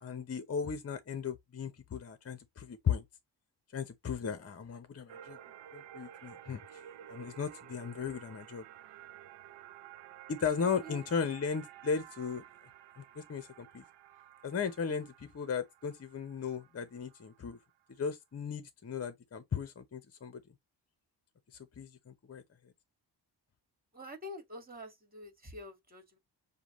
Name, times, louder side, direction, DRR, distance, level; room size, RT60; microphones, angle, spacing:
voice 1, 0.0-3.0 3.7-5.4 5.7-6.8 7.1-8.6 10.3-12.4 13.0-13.8 14.4-17.6 18.0-20.4 21.5-22.4, left 6 dB, 35° left, 0.7 m, -36 dB
sound 1, 5.1-17.7, right 11 dB, 90° right, 0.6 m, -53 dB
voice 2, 10.6-11.0 14.8-14.9 23.9-26.2, left 1 dB, 20° right, 2.0 m, -47 dB
6.7 x 2.2 x 3.0 m
cardioid pair, 65°, 42 cm